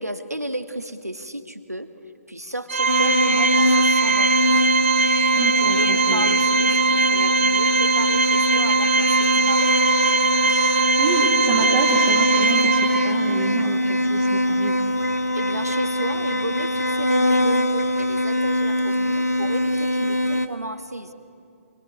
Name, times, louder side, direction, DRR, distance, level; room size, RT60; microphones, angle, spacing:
voice 1, 0.0-1.9 2.3-4.4 5.6-9.7 15.3-21.1, right 1 dB, 90° right, 8 dB, 1.7 m, -32 dB
Organ, 2.7-13.4, right 4 dB, 50° right, 1.8 m, -21 dB
sound 1, 2.9-20.5, left 1 dB, 85° left, 1.6 m, -23 dB
voice 2, 5.3-6.3 11.0-14.8, right 6 dB, 30° right, -3 dB, 2.3 m, -28 dB
25.0 x 20.5 x 9.9 m, 2.5 s
figure-of-eight pair, 135°, 8 cm